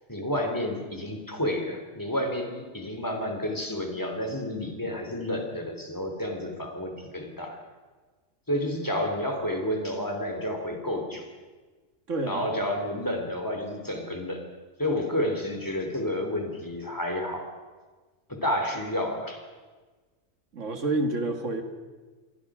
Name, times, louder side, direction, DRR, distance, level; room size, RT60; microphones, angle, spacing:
voice 1, 0.1-7.6 8.5-11.3 12.3-14.4 14.8-17.5 18.3-19.4, left 1 dB, 15° left, 3 dB, 3.4 m, -30 dB
voice 2, 12.1-12.4 20.5-21.6, right 2 dB, 70° right, 5 dB, 2.4 m, -28 dB
28.0 x 23.0 x 5.0 m, 1.3 s
omnidirectional pair, 1.3 m